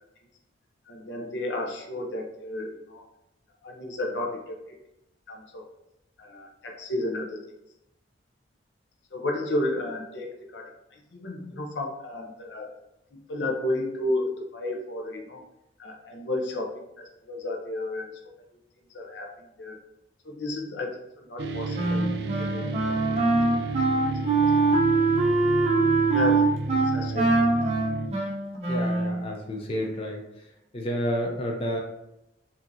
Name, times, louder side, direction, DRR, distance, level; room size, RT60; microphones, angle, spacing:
voice 1, 0.9-3.0 3.6-4.8 5.3-5.7 6.2-7.4 9.1-12.7 13.1-15.4 15.8-18.1 18.9-19.8 20.2-22.1 22.4-23.2 24.4-24.7 25.0-25.1 26.0-27.6, left 2 dB, 80° left, 1 dB, 0.7 m, -33 dB
sound 1, 21.4-28.1, right 3 dB, 65° right, 0.5 m, -32 dB
Wind instrument woodwind instrument, 21.7-29.2, right 3 dB, 35° right, 0.7 m, -23 dB
voice 2, 28.7-30.2 30.7-31.8, equal, 30° left, 1 dB, 0.5 m, -30 dB
5.1 x 2.7 x 2.7 m, 0.87 s
head